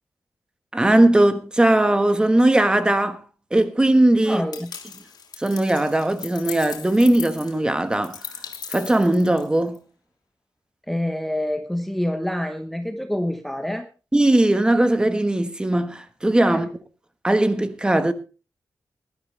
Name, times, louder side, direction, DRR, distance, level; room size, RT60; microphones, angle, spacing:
voice 1, 0.7-3.2 3.5-4.4 5.4-8.2 8.7-9.8 14.1-16.8 17.2-18.1, right 1 dB, 15° right, 1.3 m, -19 dB
voice 2, 4.2-4.7 10.9-13.9 16.5-16.7, left 1 dB, ahead, 1.0 m, -27 dB
sound 1, 4.5-9.8, left 6 dB, 90° left, 2.8 m, -38 dB
20.0 x 12.5 x 3.3 m
wide cardioid pair, 170°, 7 cm